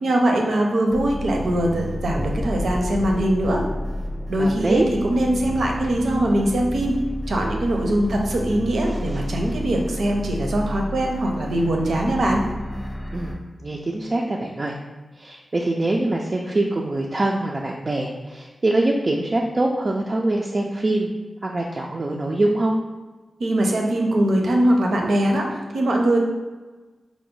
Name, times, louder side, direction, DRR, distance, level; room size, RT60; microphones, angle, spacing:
voice 1, 0.0-3.6 4.3-7.0 7.3-12.5 23.4-26.2, right 1 dB, 80° right, 1 dB, 0.6 m, -21 dB
sound 1, 0.9-13.3, equal, 10° left, 0.7 m, -31 dB
voice 2, 4.4-4.9 13.1-13.3 13.6-14.7 15.2-21.1 21.4-22.8, right 2 dB, 35° right, -1 dB, 0.3 m, -23 dB
4.7 x 2.1 x 3.7 m, 1.3 s
wide cardioid pair, 130°, 0 cm